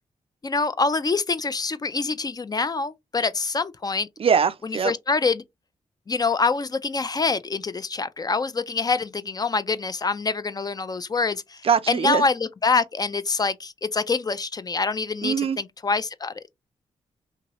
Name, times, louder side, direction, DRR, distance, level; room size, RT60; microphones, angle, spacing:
voice 1, 0.4-4.1 4.6-5.4 6.1-11.6 11.9-16.5, left 4 dB, 30° left, 0.4 m, -25 dB
voice 2, 4.2-4.9 11.6-12.2 15.2-15.6, right 7 dB, 45° right, 0.4 m, -22 dB
2.8 x 2.6 x 2.9 m
supercardioid pair, 50°, 13 cm